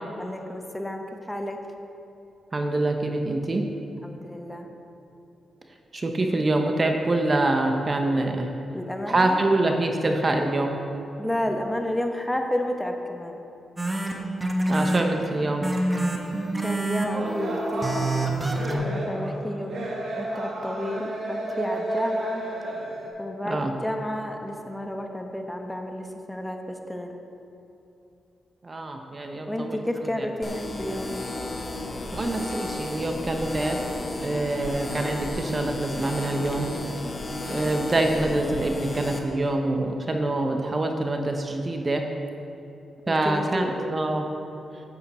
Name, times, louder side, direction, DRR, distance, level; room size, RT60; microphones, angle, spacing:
voice 1, 0.2-1.6 4.0-4.7 8.7-9.4 11.2-13.4 16.6-22.4 23.2-26.6 26.9-27.1 29.5-31.1 43.1-43.7, left 1 dB, 10° left, 4 dB, 1.0 m, -31 dB
voice 2, 2.5-3.6 5.9-8.5 9.1-10.8 14.7-15.7 23.4-23.7 28.6-29.8 32.1-33.8 34.2-36.7 37.5-42.1 43.1-44.3, right 2 dB, 35° right, 4 dB, 1.0 m, -25 dB
sound 1, 13.8-18.7, right 2 dB, 20° right, 1.3 m, -27 dB
sound 2, 17.1-23.1, right 1 dB, 70° right, 1.8 m, -31 dB
sound 3, 30.4-39.2, left 2 dB, 40° left, 1.2 m, -33 dB
9.7 x 8.6 x 4.3 m, 2.9 s
cardioid pair, 65°, 0 cm